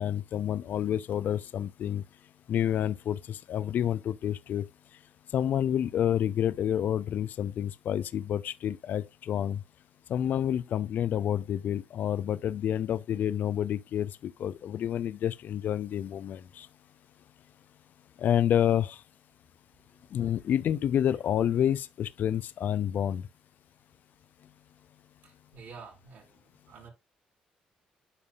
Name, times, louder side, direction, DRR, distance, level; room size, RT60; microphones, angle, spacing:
voice 1, 0.0-2.0 2.5-4.6 5.3-9.6 10.1-16.7 18.2-19.0 20.1-23.2, left 10 dB, 65° left, 0.4 m, -29 dB
voice 2, 25.2-26.9, right 5 dB, 70° right, 4.2 m, -50 dB
9.8 x 5.4 x 2.4 m
hypercardioid pair, 50°, 3 cm